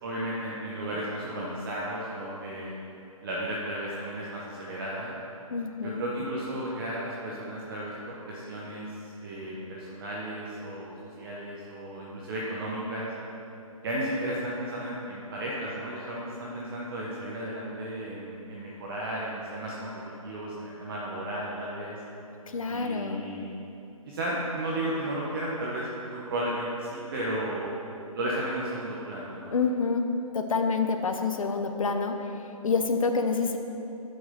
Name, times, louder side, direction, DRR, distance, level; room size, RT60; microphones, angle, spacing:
voice 1, 0.0-2.7 3.2-5.1 5.8-13.1 13.8-19.9 20.2-22.0 22.7-23.5 24.1-27.7 28.1-29.5, right 1 dB, 40° right, -5 dB, 1.4 m, -34 dB
voice 2, 5.5-6.0 22.5-23.3 29.5-30.0 30.3-32.3 32.6-33.6, left 4 dB, 65° left, 5 dB, 0.9 m, -27 dB
10.5 x 7.1 x 5.6 m, 2.9 s
figure-of-eight pair, 140°, 18 cm